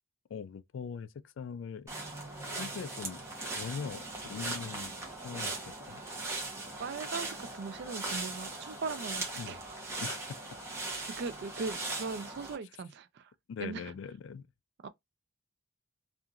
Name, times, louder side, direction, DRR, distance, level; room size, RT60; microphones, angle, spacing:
voice 1, 0.3-1.9 2.6-4.9 5.2-6.0 9.4-9.6 10.0-10.2 13.5-14.5, left 6 dB, 65° left, 0.3 m, -41 dB
sound 1, 1.9-12.5, right 2 dB, 15° right, 0.8 m, -39 dB
voice 2, 6.8-9.7 11.2-13.3 13.6-13.9 14.8-14.9, right 4 dB, 55° right, 0.3 m, -39 dB
2.8 x 2.4 x 2.4 m
head